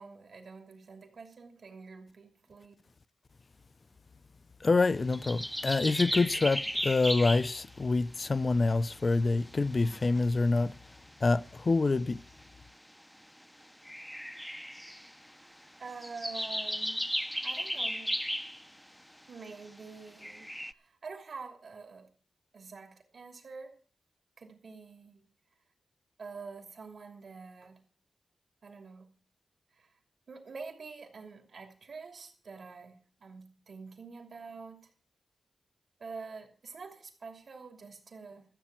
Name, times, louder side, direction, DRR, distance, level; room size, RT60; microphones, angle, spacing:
voice 1, 0.0-2.7 15.8-17.0 17.4-18.1 19.3-20.5 20.7-22.1 22.5-23.7 24.4-25.2 26.2-27.8 28.6-29.1 29.8-29.9 30.3-34.8 36.0-38.4, right 4 dB, 70° right, 2.9 m, -46 dB
voice 2, 4.6-10.7 11.2-12.2, left 3 dB, 45° left, 0.6 m, -26 dB
sound 1, 5.1-7.6 9.1-9.2 9.5-10.4 12.4-12.5 13.9-15.3 15.9-18.7 19.6-19.8 20.2-20.7, equal, 5° left, 0.6 m, -35 dB
13.5 x 8.0 x 7.5 m
cardioid pair, 75°, 0 cm